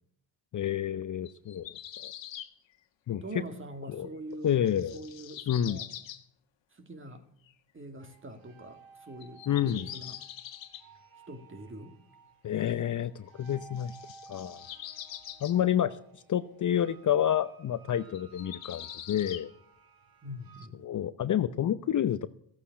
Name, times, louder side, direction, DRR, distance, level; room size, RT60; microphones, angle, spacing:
voice 1, 0.5-1.7 2.0-2.1 3.1-3.2 3.9-4.1 4.4-5.0 5.5-5.8 9.5-9.9 12.4-14.0 14.3-14.7 15.4-19.5 20.8-22.3, left 10 dB, 40° left, 0.7 m, -29 dB
sound 1, 1.3-2.5 3.9-4.0 4.5-6.2 7.5-7.6 9.2-10.8 13.5-15.6 18.1-19.5, left 11 dB, 60° left, 1.6 m, -44 dB
voice 2, 3.2-4.6 4.9-5.9 6.7-7.2 7.7-10.2 11.3-12.0 20.2-20.8, right 1 dB, 25° right, 2.3 m, -43 dB
sound 2, 8.0-20.7, right 5 dB, 45° right, 2.5 m, -56 dB
15.5 x 8.4 x 8.4 m
hypercardioid pair, 65°, 49 cm